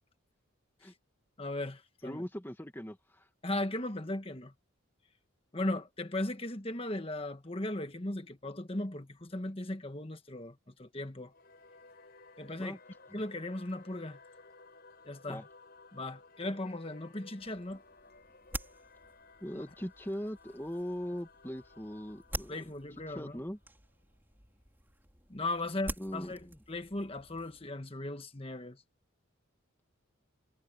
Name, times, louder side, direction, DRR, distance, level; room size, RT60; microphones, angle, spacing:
voice 1, 1.4-2.2 3.4-4.5 5.5-11.3 12.4-12.8 13.1-14.2 15.0-15.4 15.9-17.8 19.5-19.6 22.5-23.3 25.3-26.4 26.7-28.8, left 1 dB, 25° left, 1.4 m, -37 dB
voice 2, 2.0-3.3 12.6-12.8 13.1-13.2 15.3-15.4 19.4-22.7 23.1-23.6 26.0-26.6, equal, 10° left, 2.1 m, -40 dB
Singing / Musical instrument, 11.3-24.2, left 3 dB, 45° left, 6.1 m, -58 dB
sound 1, 17.4-27.7, right 1 dB, 10° right, 4.1 m, -47 dB
head